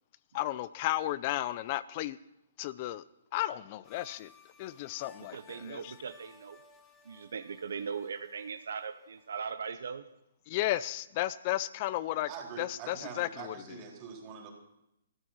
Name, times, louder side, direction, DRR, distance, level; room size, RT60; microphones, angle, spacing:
voice 1, 0.3-2.2 2.6-3.0 3.3-4.3 4.6-5.9 10.5-12.3 12.6-13.5, left 15 dB, 40° left, 17 dB, 0.4 m, -33 dB
sound 1, 3.8-9.7, left 5 dB, 15° left, 2.0 m, -61 dB
voice 2, 5.2-6.6 7.0-10.0, right 6 dB, 70° right, 9 dB, 0.8 m, -39 dB
voice 3, 12.3-14.5, right 6 dB, 30° right, 0 dB, 3.8 m, -44 dB
14.0 x 11.0 x 5.7 m, 0.84 s
hypercardioid pair, 135°, 0 cm